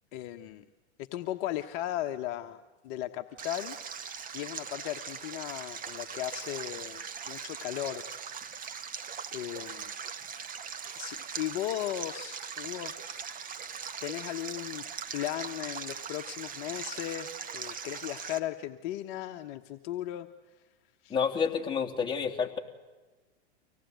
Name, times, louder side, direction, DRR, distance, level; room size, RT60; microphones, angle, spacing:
voice 1, 0.1-0.6 1.0-3.8 4.3-8.0 9.3-9.9 11.0-12.9 14.0-14.8 15.1-20.3 21.0-21.1, left 13 dB, 50° left, 6 dB, 1.2 m, -36 dB
Stream, 3.4-18.4, right 6 dB, 25° right, 1.6 m, -40 dB
voice 2, 21.1-22.6, left 6 dB, 15° left, -2 dB, 3.1 m, -29 dB
25.0 x 18.0 x 9.3 m, 1.2 s
hypercardioid pair, 120°, 34 cm